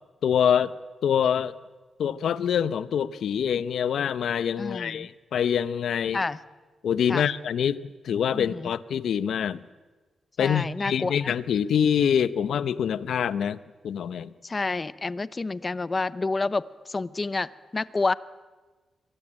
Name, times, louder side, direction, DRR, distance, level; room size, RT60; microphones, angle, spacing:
voice 1, 0.2-0.7 1.0-1.5 2.0-6.2 6.8-9.6 10.4-13.6 13.8-14.3, left 8 dB, 75° left, 15 dB, 0.9 m, -25 dB
voice 2, 4.6-5.1 6.1-6.4 7.1-7.3 8.3-8.7 10.4-11.3 14.4-18.1, left 3 dB, 25° left, 17 dB, 0.7 m, -29 dB
24.5 x 19.5 x 8.9 m, 1.3 s
wide cardioid pair, 125°, 0 cm